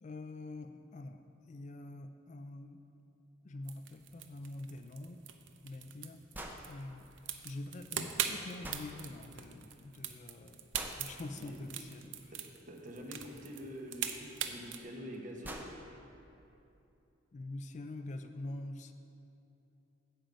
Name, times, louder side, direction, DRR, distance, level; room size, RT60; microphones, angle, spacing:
voice 1, 0.0-2.8 3.4-5.2 5.6-6.2 6.6-7.1 7.4-10.7 11.0-12.3 17.3-18.9, left 2 dB, 40° left, 8 dB, 0.4 m, -45 dB
sound 1, 3.7-14.8, right 8 dB, 75° right, 0.6 m, -42 dB
sound 2, 6.3-6.6 8.6-8.9 10.7-11.0 13.3-13.4 14.7-14.8 15.1-15.2 15.4-15.7, right 1 dB, 10° right, 0.6 m, -44 dB
voice 2, 12.7-15.6, equal, 45° right, 1 dB, 1.1 m, -46 dB
8.9 x 7.7 x 5.2 m, 2.8 s
head